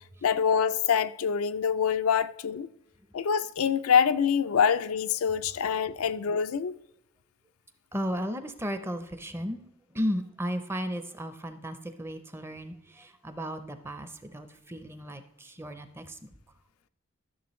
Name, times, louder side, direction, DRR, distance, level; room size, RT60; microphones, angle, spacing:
voice 1, 0.2-2.7 3.1-6.8, left 7 dB, 90° left, 0.4 m, -25 dB
voice 2, 7.9-9.6 9.9-16.3, equal, 10° right, 0.6 m, -35 dB
13.5 x 6.8 x 3.1 m
head